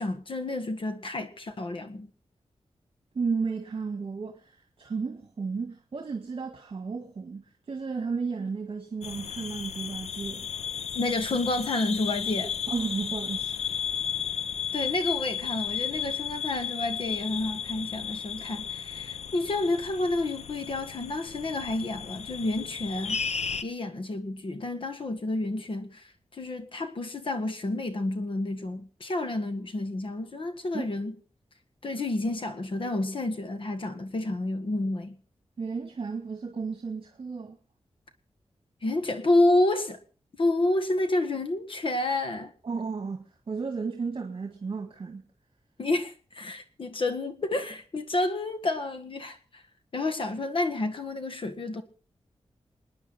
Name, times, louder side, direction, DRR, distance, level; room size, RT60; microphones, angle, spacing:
voice 1, 0.0-2.1 11.0-12.5 14.7-23.2 23.6-26.1 26.3-31.1 31.8-35.1 38.8-40.0 40.4-42.5 45.8-49.6 49.9-51.8, left 2 dB, 55° left, 1.8 m, -29 dB
voice 2, 3.1-10.5 12.7-13.7 30.7-30.9 35.6-37.6 42.6-45.2, right 5 dB, 50° right, 1.8 m, -33 dB
sound 1, 9.0-23.6, left 8 dB, 90° left, 0.7 m, -34 dB
28.5 x 9.9 x 4.3 m
wide cardioid pair, 120°, 11 cm